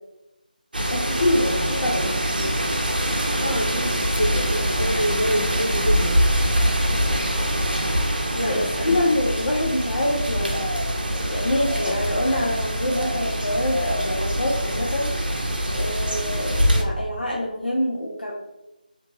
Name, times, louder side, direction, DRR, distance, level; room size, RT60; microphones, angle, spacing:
sound 1, 0.7-16.8, equal, 75° right, 0.6 m, -24 dB
voice 1, 0.9-2.5 6.9-7.3 8.4-8.6 8.8-10.6 11.1-15.1 15.7-18.3, left 1 dB, 90° left, -3 dB, 0.6 m, -25 dB
voice 2, 3.2-6.2 8.3-9.1, equal, 60° left, -4 dB, 1.4 m, -27 dB
2.8 x 2.6 x 2.5 m, 0.94 s
figure-of-eight pair, 165°, 5 cm